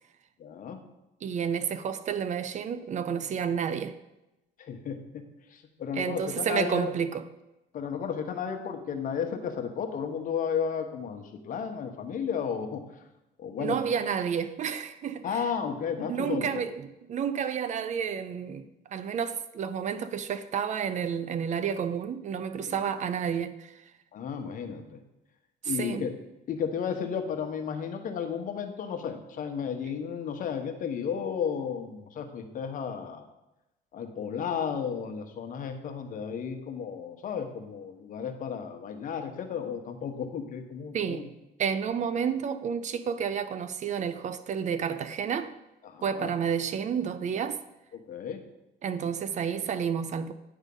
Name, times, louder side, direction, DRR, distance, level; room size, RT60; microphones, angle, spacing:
voice 1, 0.4-0.8 4.6-6.9 7.7-13.0 13.4-13.8 15.2-16.6 22.6-22.8 24.1-25.0 25.6-26.1 26.5-33.3 33.9-41.3 45.8-46.3 47.9-48.4, left 7 dB, 50° left, 1.0 m, -33 dB
voice 2, 1.2-4.0 5.9-7.2 13.6-15.2 16.1-16.7 17.1-23.8 25.6-26.1 40.9-41.3 41.6-45.6 46.0-47.6 48.8-50.3, right 7 dB, 45° right, 0.5 m, -30 dB
9.4 x 3.6 x 5.3 m
cardioid pair, 110°, 17 cm